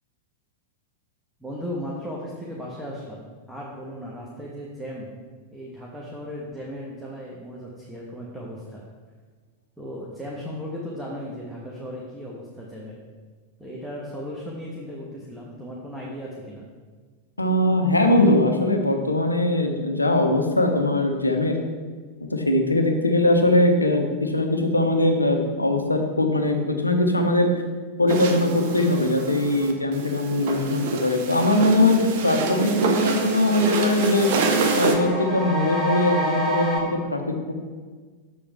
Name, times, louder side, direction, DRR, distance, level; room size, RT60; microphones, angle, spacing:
voice 1, 1.4-5.2 5.5-8.8 9.8-13.0 13.6-16.7, equal, 5° right, -4 dB, 1.3 m, -36 dB
voice 2, 17.4-21.6 22.3-27.5 28.0-34.3 34.7-37.5, left 1 dB, 80° left, 5 dB, 0.9 m, -21 dB
sound 1, 28.1-35.0, right 5 dB, 50° right, 1.0 m, -27 dB
sound 2, 31.8-36.8, equal, 10° left, 1.8 m, -30 dB
7.4 x 6.9 x 3.6 m, 1.5 s
figure-of-eight pair, 90°, 0 cm